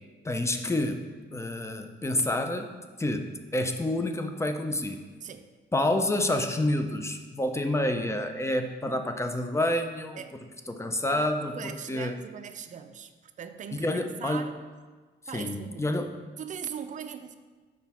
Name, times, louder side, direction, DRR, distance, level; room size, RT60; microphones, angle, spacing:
voice 1, 0.2-1.0 1.3-2.7 3.0-5.0 5.7-10.2 10.7-12.1 13.7-14.5 15.3-16.2, left 1 dB, 15° left, 6 dB, 0.5 m, -28 dB
voice 2, 11.5-14.6 15.3-16.1 16.4-17.4, right 7 dB, 40° right, 8 dB, 0.4 m, -40 dB
6.0 x 4.5 x 4.3 m, 1.4 s
cardioid pair, 90°, 20 cm